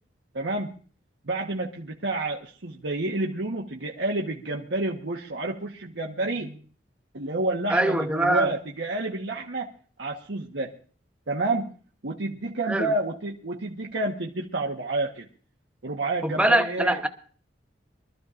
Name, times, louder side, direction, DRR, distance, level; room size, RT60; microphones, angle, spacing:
voice 1, 0.3-0.7 1.2-6.6 7.1-9.7 10.0-10.7 11.3-11.7 12.0-15.3 15.8-17.0, right 2 dB, 85° right, 1.2 m, -29 dB
voice 2, 7.7-8.5 12.7-12.9 16.2-17.1, right 1 dB, 5° right, 0.9 m, -23 dB
24.0 x 13.5 x 2.5 m
head